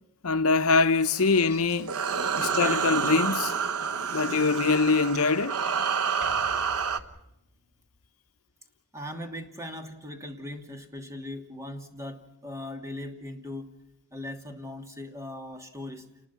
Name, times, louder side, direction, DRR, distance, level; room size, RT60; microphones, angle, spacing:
voice 1, 0.2-1.9 2.4-3.5 4.1-5.6, left 4 dB, 70° left, 0.9 m, -23 dB
sound 1, 1.0-7.0, right 6 dB, 75° right, 1.2 m, -29 dB
voice 2, 2.6-3.3 4.1-4.3 8.9-13.7 14.1-16.1, left 1 dB, 15° right, 2.9 m, -39 dB
sound 2, 3.7-7.8, equal, 40° right, 7.8 m, -53 dB
28.5 x 21.0 x 5.9 m
head